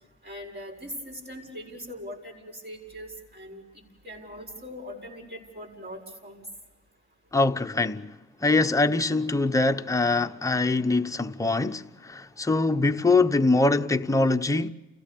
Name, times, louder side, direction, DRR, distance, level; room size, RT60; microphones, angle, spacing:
voice 1, 0.2-6.4, equal, 35° right, 7.0 m, -41 dB
voice 2, 7.3-8.1 8.4-14.7, left 3 dB, 10° left, 0.9 m, -23 dB
29.5 x 16.5 x 6.9 m
cardioid pair, 90°, 30 cm